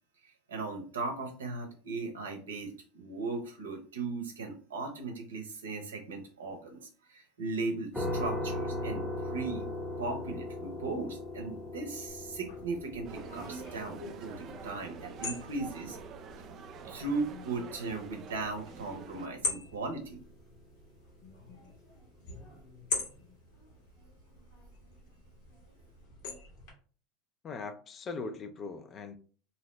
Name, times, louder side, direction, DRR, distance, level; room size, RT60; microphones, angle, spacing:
voice 1, 0.2-9.7 10.0-16.0 16.9-20.2, right 3 dB, 85° right, 0.7 m, -37 dB
sound 1, 7.9-20.8, left 1 dB, 10° left, 0.7 m, -40 dB
sound 2, 12.1-26.7, left 3 dB, 65° left, 1.3 m, -43 dB
sound 3, 13.0-19.3, right 7 dB, 45° right, 0.3 m, -48 dB
voice 2, 27.4-29.2, left 4 dB, 35° left, 0.4 m, -40 dB
2.7 x 2.0 x 3.0 m
hypercardioid pair, 85°, 0 cm